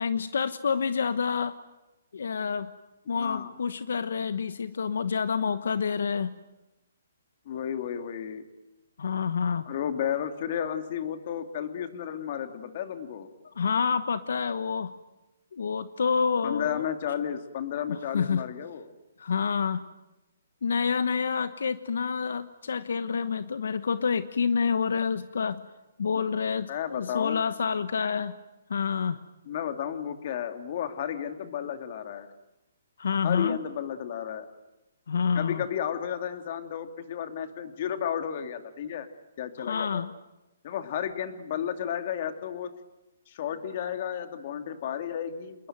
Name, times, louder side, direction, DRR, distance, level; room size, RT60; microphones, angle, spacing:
voice 1, 0.0-1.6 2.1-2.7 3.1-6.4 9.0-9.7 13.6-14.9 15.5-16.8 17.9-18.4 19.2-19.8 20.6-25.6 26.0-28.3 28.7-29.2 33.0-33.6 35.1-35.6 39.6-40.1, left 6 dB, 75° left, 13 dB, 1.2 m, -28 dB
voice 2, 3.2-3.5 7.5-8.4 9.7-13.3 16.4-18.9 26.7-27.4 29.5-32.3 33.2-34.5 35.3-39.1 39.4-40.0 40.6-42.7 43.3-45.7, left 9 dB, 40° left, 8 dB, 2.6 m, -33 dB
28.0 x 21.0 x 9.3 m, 1.0 s
hypercardioid pair, 165°, 0 cm